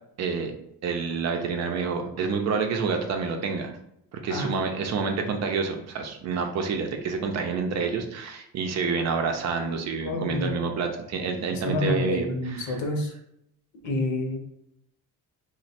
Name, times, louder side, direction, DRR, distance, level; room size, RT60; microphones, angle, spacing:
voice 1, 0.2-0.5 0.8-3.7 4.1-12.7, right 5 dB, 55° right, 4 dB, 0.5 m, -28 dB
voice 2, 10.1-10.5 11.5-13.1 13.8-14.4, left 2 dB, 60° left, 3 dB, 0.8 m, -28 dB
3.0 x 2.2 x 4.2 m, 0.76 s
cardioid pair, 160°, 33 cm